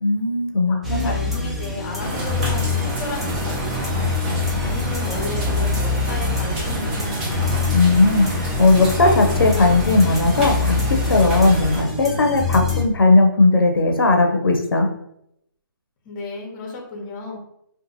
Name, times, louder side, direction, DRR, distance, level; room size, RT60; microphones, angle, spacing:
voice 1, 0.0-1.1 7.7-14.9, left 3 dB, 90° left, 2 dB, 0.6 m, -17 dB
sound 1, 0.8-12.8, left 4 dB, ahead, 0.3 m, -25 dB
voice 2, 1.0-4.1 4.6-7.5 16.0-17.4, left 2 dB, 25° left, 0 dB, 0.8 m, -33 dB
Rain Under Deck, 2.0-11.8, right 1 dB, 25° right, 0.7 m, -28 dB
2.6 x 2.4 x 2.6 m, 0.76 s
hypercardioid pair, 150°, 12 cm